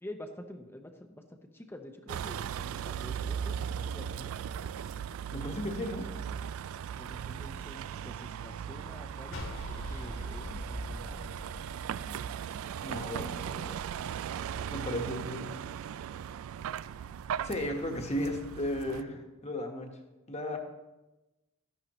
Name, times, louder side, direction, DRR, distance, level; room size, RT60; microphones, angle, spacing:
voice 1, 0.0-4.3 5.9-6.0 6.9-11.2 13.0-13.8, left 1 dB, 10° left, 5 dB, 0.7 m, -48 dB
Vehicle, 2.1-19.0, right 8 dB, 90° right, 0.3 m, -38 dB
voice 2, 5.3-6.1 12.0-12.3 12.8-13.3 14.7-15.5 17.4-19.9 20.3-20.6, left 1 dB, 30° left, 3 dB, 1.3 m, -35 dB
sound 1, 9.3-12.6, left 1 dB, 80° left, 3.3 m, -41 dB
13.0 x 11.0 x 3.1 m, 1.0 s
head